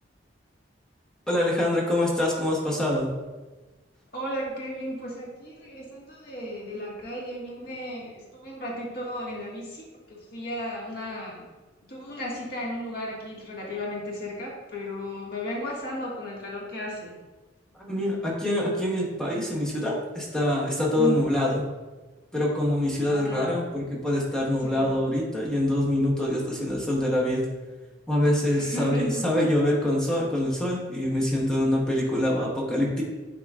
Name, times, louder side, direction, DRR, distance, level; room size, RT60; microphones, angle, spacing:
voice 1, 1.3-3.1 17.7-21.6 22.3-27.4 28.1-33.0, left 1 dB, 5° left, -4 dB, 1.0 m, -25 dB
voice 2, 4.1-11.5 11.9-17.2 21.0-21.3 23.1-23.6 24.6-24.9 28.5-29.3, left 1 dB, 50° left, -4 dB, 1.7 m, -34 dB
10.5 x 3.7 x 2.5 m, 1.2 s
head